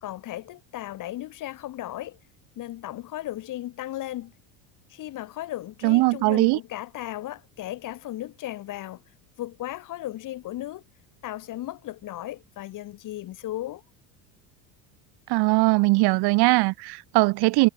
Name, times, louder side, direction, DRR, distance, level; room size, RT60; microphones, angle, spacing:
voice 1, 0.0-2.2 2.6-4.3 4.9-9.0 9.4-10.8 11.2-13.8, left 14 dB, 45° left, 2.1 m, -36 dB
voice 2, 5.8-6.6 15.3-17.7, right 23 dB, 60° right, 1.6 m, -20 dB
supercardioid pair, 130°, 44 cm